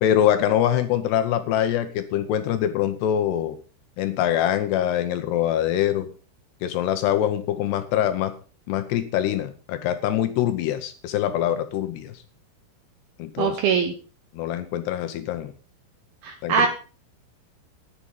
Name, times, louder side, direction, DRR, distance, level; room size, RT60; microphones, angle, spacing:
voice 1, 0.0-3.6 4.0-6.1 6.6-8.3 8.7-12.2 13.2-13.6 14.3-15.5 16.4-16.7, left 11 dB, 75° left, 10 dB, 2.5 m, -24 dB
voice 2, 13.4-13.9 16.2-16.7, right 6 dB, 75° right, 6 dB, 2.3 m, -22 dB
11.0 x 10.0 x 5.5 m, 0.36 s
omnidirectional pair, 5.7 m